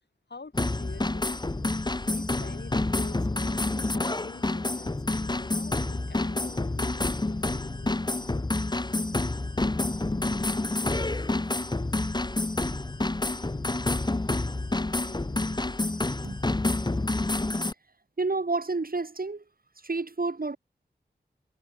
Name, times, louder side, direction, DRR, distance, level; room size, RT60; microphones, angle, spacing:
voice 1, 0.3-1.4 2.1-7.0, left 4 dB, 70° left, 5.5 m, -47 dB
sound 1, 0.5-17.7, left 2 dB, 25° left, 1.0 m, -28 dB
sound 2, 1.5-15.7, left 4 dB, 90° left, 6.8 m, -48 dB
voice 2, 18.2-19.4 19.8-20.6, right 3 dB, 55° right, 4.7 m, -30 dB
wide cardioid pair, 65°, 18 cm